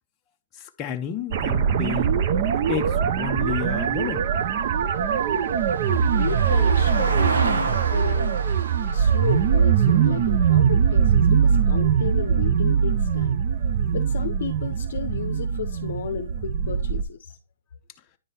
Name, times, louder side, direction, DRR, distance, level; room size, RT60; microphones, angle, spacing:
voice 1, 0.6-2.2 2.7-4.3, left 8 dB, 20° left, 0.6 m, -31 dB
sound 1, 1.3-17.0, right 7 dB, 40° right, 0.6 m, -22 dB
Vehicle, 1.9-12.4 14.7-14.8, right 4 dB, 85° right, 1.2 m, -34 dB
voice 2, 6.2-8.4 8.9-13.4 13.9-17.4, left 8 dB, 60° left, 0.6 m, -33 dB
9.8 x 3.7 x 4.2 m
hypercardioid pair, 160°, 0 cm